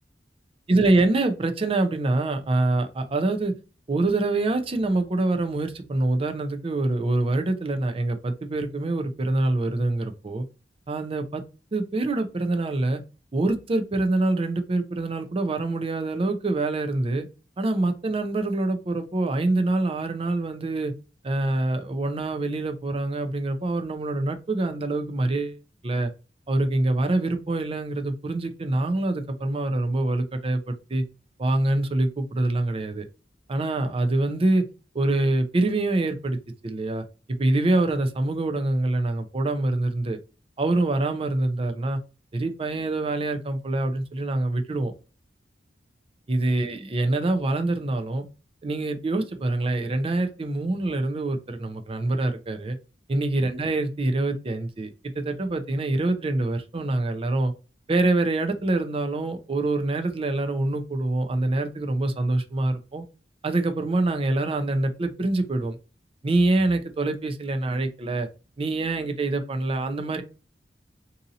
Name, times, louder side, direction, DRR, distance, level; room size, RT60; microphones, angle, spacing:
voice 1, 0.7-3.5 3.9-10.4 10.9-11.4 11.7-13.0 13.3-17.3 17.6-20.9 21.2-26.1 26.5-31.0 31.4-33.0 33.5-34.6 34.9-36.4 36.6-37.0 37.4-40.2 40.6-42.0 42.3-44.9 46.3-48.2 48.6-52.8 53.1-57.5 57.9-63.0 63.4-65.8 66.2-68.3 68.6-70.2, right 2 dB, 35° right, 6 dB, 0.5 m, -25 dB
2.7 x 2.6 x 3.8 m, 0.32 s
head